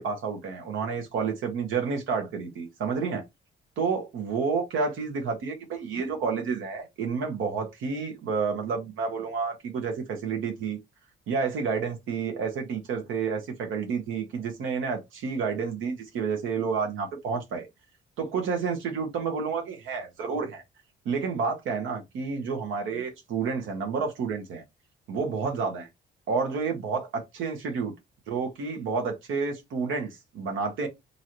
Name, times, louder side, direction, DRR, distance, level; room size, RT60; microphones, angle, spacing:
voice 1, 0.0-3.2 3.8-10.8 11.3-17.7 18.2-20.6 21.0-24.6 25.1-25.9 26.3-27.9 28.3-30.9, right 5 dB, 80° right, 0.9 m, -30 dB
3.0 x 2.6 x 2.9 m
cardioid pair, 90°, 20 cm